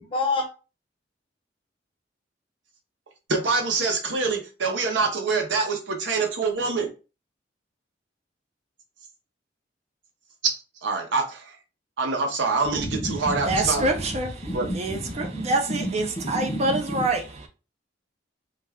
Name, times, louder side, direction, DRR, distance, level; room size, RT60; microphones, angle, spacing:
voice 1, 0.0-0.5 12.8-13.6 14.4-15.9 16.3-16.8, left 1 dB, 30° left, 0.6 m, -29 dB
voice 2, 3.3-6.9 10.8-11.6 12.0-13.9 14.5-14.7, right 4 dB, 75° right, 0.7 m, -25 dB
voice 3, 13.1-17.5, right 2 dB, 35° right, 0.4 m, -26 dB
2.4 x 2.2 x 3.3 m
head